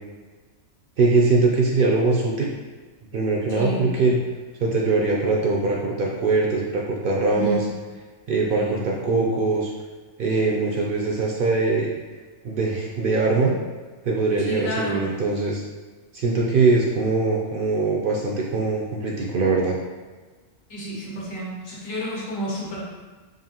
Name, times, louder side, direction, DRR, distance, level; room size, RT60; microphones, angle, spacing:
voice 1, 1.0-2.5 3.1-4.2 4.6-7.6 8.3-9.7 10.2-11.9 12.4-13.6 14.0-15.6 16.1-19.8, right 3 dB, 65° right, -2 dB, 0.5 m, -22 dB
voice 2, 3.5-3.9 7.3-7.7 8.5-8.8 14.4-15.0 20.7-22.8, right 1 dB, 80° left, -6 dB, 1.5 m, -30 dB
5.1 x 2.6 x 2.8 m, 1.3 s
omnidirectional pair, 1.3 m